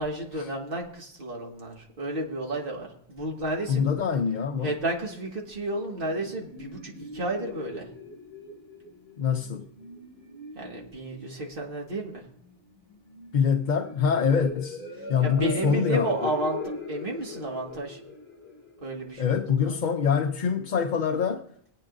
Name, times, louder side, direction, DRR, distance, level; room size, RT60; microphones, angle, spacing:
voice 1, 0.0-3.9 4.6-7.9 10.5-12.2 15.2-16.6 16.9-18.0 18.8-19.3 19.6-19.8, right 1 dB, 60° right, 2.0 m, -32 dB
voice 2, 3.7-4.7 9.2-9.7 13.3-14.8 15.1-16.3 19.2-21.4, left 6 dB, 55° left, 0.8 m, -25 dB
sound 1, 5.6-19.6, left 3 dB, 75° left, 2.6 m, -41 dB
26.0 x 8.9 x 2.6 m
omnidirectional pair, 1.0 m